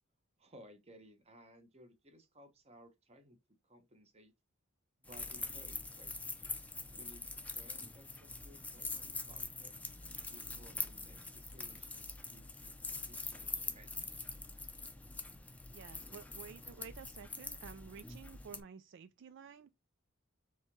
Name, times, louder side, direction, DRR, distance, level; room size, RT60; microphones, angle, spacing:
voice 1, 0.4-3.4 3.6-4.3 5.0-6.4 6.9-9.7 10.3-13.9, equal, 30° right, 1.0 m, -60 dB
sound 1, 5.0-18.6, left 3 dB, 5° left, 0.5 m, -44 dB
voice 2, 15.7-19.7, right 6 dB, 60° right, 0.3 m, -52 dB
4.5 x 3.5 x 3.0 m
head